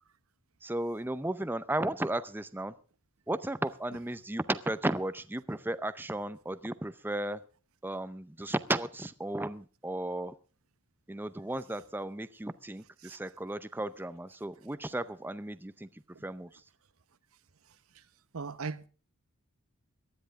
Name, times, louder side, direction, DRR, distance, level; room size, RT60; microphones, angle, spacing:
voice 1, 0.6-2.7 3.3-7.4 7.8-10.3 11.1-15.9 16.2-16.5, right 1 dB, 10° right, 0.6 m, -34 dB
voice 2, 18.3-18.9, right 4 dB, 85° right, 0.9 m, -38 dB
18.5 x 12.5 x 3.6 m
head